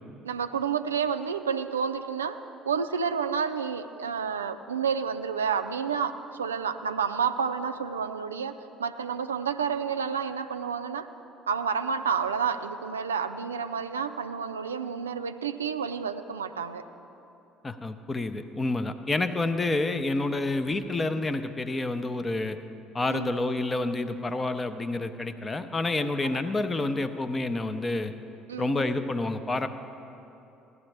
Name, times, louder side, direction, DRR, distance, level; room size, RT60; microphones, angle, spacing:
voice 1, 0.2-2.4 2.7-8.5 8.8-11.1 11.5-16.8 23.1-23.3 26.2-26.3 28.5-28.8, right 6 dB, 80° right, 9 dB, 0.3 m, -30 dB
voice 2, 17.6-22.6 22.9-28.1 28.6-29.7, left 2 dB, 25° left, 10 dB, 0.6 m, -28 dB
15.5 x 11.0 x 3.3 m, 2.9 s
figure-of-eight pair, 55°, 0 cm